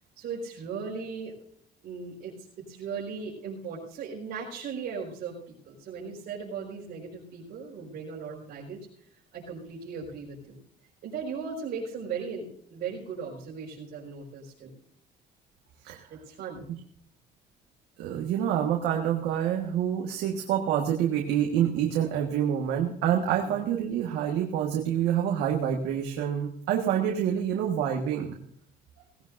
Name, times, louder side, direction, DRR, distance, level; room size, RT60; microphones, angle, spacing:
voice 1, 0.1-1.3 1.8-8.8 9.3-10.6 11.0-14.7 16.1-16.7 23.4-23.5, right 5 dB, 65° right, -6 dB, 5.1 m, -37 dB
voice 2, 18.0-28.3, right 9 dB, 85° right, 1 dB, 1.6 m, -27 dB
18.0 x 16.5 x 2.6 m, 0.66 s
cardioid pair, 110°, 17 cm